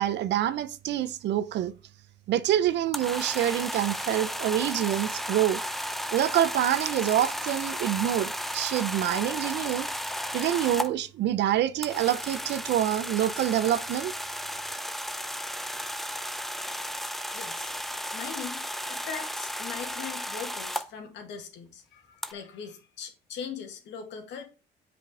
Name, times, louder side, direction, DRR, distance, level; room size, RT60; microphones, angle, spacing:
voice 1, 0.0-1.7 2.3-5.6 6.1-9.9 10.3-14.1, right 12 dB, 65° right, 0.7 m, -26 dB
sound 1, 2.9-10.9 11.8-20.8 22.2-22.3, equal, ahead, 0.6 m, -34 dB
voice 2, 17.3-17.7 18.1-24.4, left 7 dB, 70° left, 2.2 m, -40 dB
7.7 x 5.2 x 4.8 m
cardioid pair, 120°, 19 cm